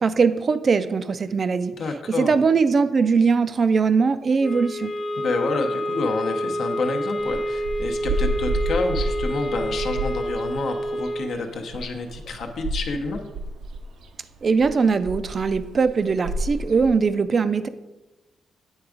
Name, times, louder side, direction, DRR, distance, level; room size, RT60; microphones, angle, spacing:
voice 1, 0.0-1.7 2.2-4.9 14.4-17.7, right 5 dB, 35° right, 12 dB, 0.4 m, -21 dB
voice 2, 1.8-2.3 5.2-13.2, left 3 dB, 60° left, 3 dB, 0.7 m, -28 dB
sound 1, 4.4-11.4, equal, 30° left, 0.4 m, -28 dB
sound 2, 7.2-16.9, right 2 dB, 75° right, 0.6 m, -30 dB
8.9 x 3.5 x 5.0 m, 1.1 s
cardioid pair, 145°, 0 cm